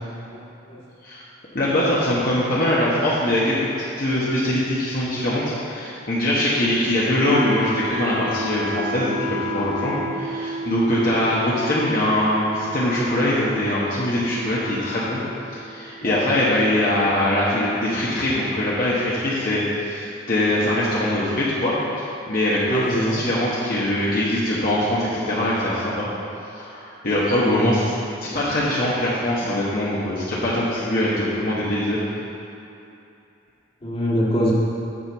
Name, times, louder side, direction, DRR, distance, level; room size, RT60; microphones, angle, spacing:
voice 1, 0.3-0.8 16.0-16.3 22.7-23.2 27.4-27.8 33.8-34.5, equal, 30° left, -6 dB, 1.8 m, -24 dB
voice 2, 1.5-3.7 4.0-15.2 15.5-26.1 26.5-27.9 28.2-32.0, left 1 dB, 50° left, -8 dB, 1.2 m, -22 dB
Wind instrument woodwind instrument, 7.2-17.2, equal, 30° right, 0.8 m, -33 dB
8.9 x 5.1 x 6.9 m, 2.8 s
head